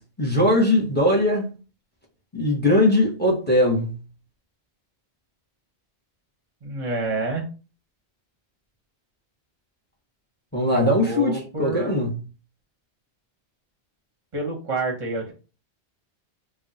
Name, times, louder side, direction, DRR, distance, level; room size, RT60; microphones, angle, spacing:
voice 1, 0.0-1.4 2.3-3.9 10.5-12.1, left 1 dB, 10° left, 0.8 m, -20 dB
voice 2, 6.6-7.4 10.7-12.0 14.3-15.3, right 2 dB, 35° right, 0.8 m, -28 dB
2.3 x 2.3 x 3.9 m
omnidirectional pair, 1.1 m